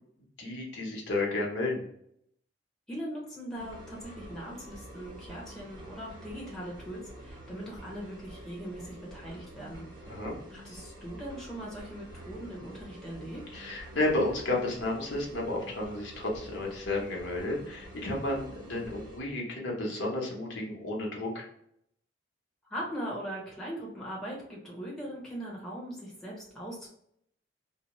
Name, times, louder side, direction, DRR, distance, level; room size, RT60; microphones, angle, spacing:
voice 1, 0.4-1.8 10.1-10.3 13.5-21.5, left 2 dB, 70° left, -2 dB, 0.8 m, -32 dB
voice 2, 2.9-9.9 10.5-13.6 22.7-26.9, equal, 5° left, -5 dB, 0.8 m, -40 dB
sound 1, 3.5-19.2, right 1 dB, 20° right, 1.0 m, -48 dB
2.7 x 2.0 x 3.0 m, 0.72 s
head